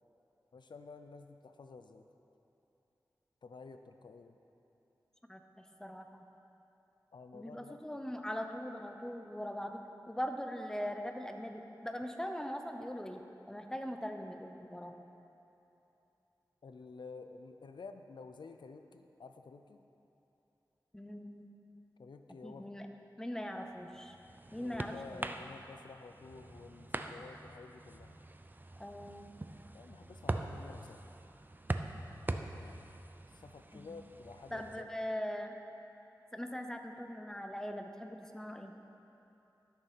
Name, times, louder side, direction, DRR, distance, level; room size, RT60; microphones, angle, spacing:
voice 1, 0.5-2.1 3.4-4.4 7.1-7.8 16.6-19.8 22.0-22.7 24.6-28.2 29.7-31.0 32.3-32.9 33.3-34.9, left 4 dB, 90° left, 7 dB, 0.5 m, -51 dB
voice 2, 5.3-6.2 7.3-13.2 13.5-15.0 20.9-21.5 22.3-22.9 23.2-24.2 24.5-25.3 28.8-29.3 33.7-33.9 34.5-35.6 36.3-38.7, equal, 5° left, 5 dB, 0.7 m, -41 dB
sound 1, 23.7-34.8, right 2 dB, 25° right, 0.5 m, -43 dB
12.5 x 6.6 x 5.7 m, 2.9 s
wide cardioid pair, 80°, 8 cm